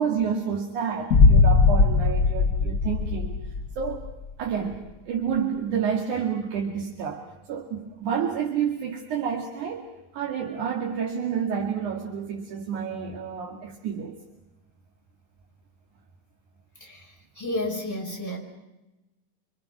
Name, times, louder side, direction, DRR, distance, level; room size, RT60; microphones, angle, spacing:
voice 1, 0.0-3.3 3.8-4.1 4.4-7.2 7.5-9.9 10.1-14.2, right 7 dB, 80° right, 0 dB, 3.6 m, -29 dB
Boom, 1.1-4.1, left 4 dB, 60° left, 0.9 m, -19 dB
voice 2, 16.8-18.4, left 1 dB, 5° left, -1 dB, 5.7 m, -32 dB
29.5 x 26.0 x 6.1 m, 1.0 s
omnidirectional pair, 3.5 m